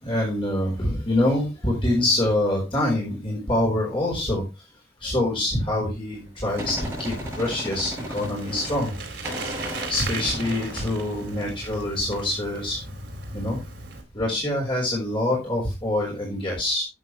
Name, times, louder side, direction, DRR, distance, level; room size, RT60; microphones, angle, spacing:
voice 1, 0.0-4.4 5.0-8.9 9.9-12.8 13.3-13.6 14.1-16.8, left 1 dB, 25° left, -3 dB, 4.8 m, -25 dB
Gunshot gunfire, 6.1-9.0 9.2-12.0, equal, 10° right, 7.4 m, -36 dB
Bicycle, 6.5-14.0, right 3 dB, 60° right, 3.9 m, -37 dB
12.5 x 9.0 x 3.3 m, 0.26 s
head